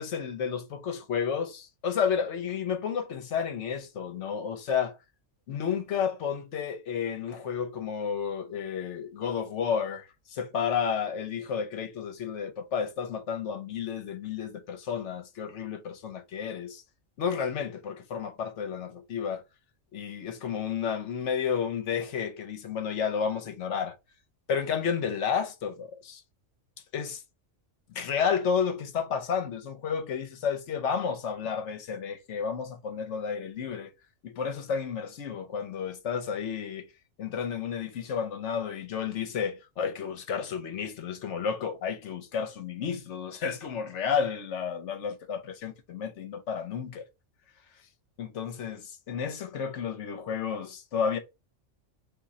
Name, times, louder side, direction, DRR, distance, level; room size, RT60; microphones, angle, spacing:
voice 1, 0.0-5.0 5.5-16.8 17.2-19.4 19.9-24.0 24.5-26.2 26.9-27.2 27.9-33.9 34.2-36.9 37.2-47.0 48.2-51.2, left 7 dB, 70° left, 1.0 m, -31 dB
3.7 x 2.5 x 4.1 m
omnidirectional pair, 1.3 m